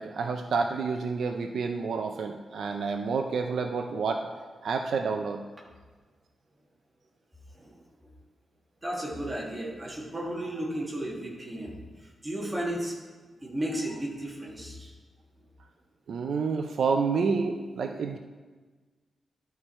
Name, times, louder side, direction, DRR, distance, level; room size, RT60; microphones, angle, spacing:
voice 1, 0.0-4.3 4.6-5.4 16.1-18.2, right 5 dB, 75° right, 4 dB, 0.5 m, -29 dB
voice 2, 8.8-11.8 12.2-12.9 13.4-14.9, right 1 dB, 15° right, -4 dB, 1.7 m, -34 dB
12.0 x 4.7 x 4.3 m, 1.4 s
wide cardioid pair, 170°, 0 cm